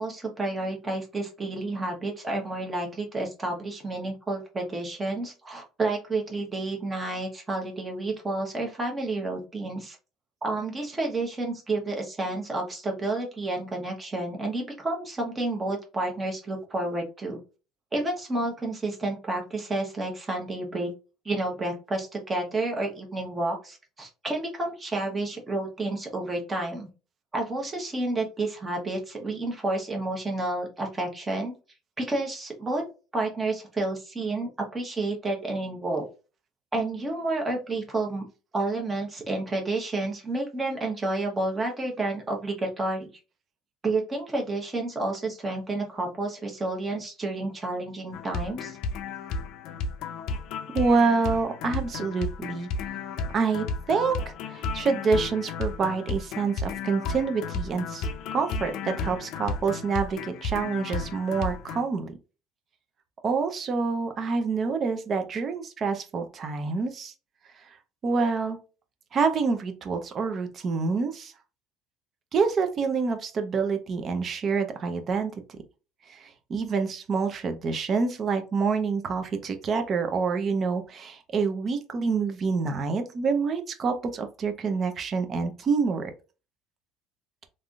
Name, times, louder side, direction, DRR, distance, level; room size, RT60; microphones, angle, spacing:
voice 1, 0.0-10.0 10.4-17.4 17.9-20.9 21.2-26.9 27.3-31.5 32.0-32.8 33.1-36.0 36.7-38.2 38.5-43.1 43.8-48.8, right 2 dB, 20° right, 1 dB, 1.0 m, -30 dB
sound 1, 48.1-61.8, left 4 dB, 65° left, 0.4 m, -33 dB
voice 2, 50.7-58.1 58.3-62.2 63.2-67.1 68.0-68.6 69.1-71.3 72.3-75.3 76.1-86.1, right 4 dB, 35° right, 6 dB, 0.6 m, -27 dB
3.4 x 2.6 x 2.3 m, 0.32 s
cardioid pair, 135°, 0 cm